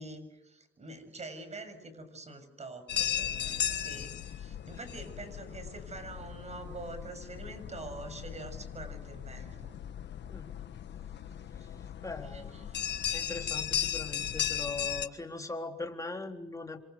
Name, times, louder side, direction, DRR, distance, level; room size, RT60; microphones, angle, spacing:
voice 1, 0.0-9.8 11.6-11.7 12.3-12.8, right 2 dB, 35° right, 9 dB, 7.5 m, -45 dB
sound 1, 2.9-15.1, left 10 dB, 60° left, 1.5 m, -36 dB
voice 2, 11.5-12.5 13.1-16.8, left 3 dB, 15° left, 3 dB, 3.7 m, -40 dB
29.0 x 26.0 x 6.7 m, 0.89 s
cardioid pair, 90°, 20 cm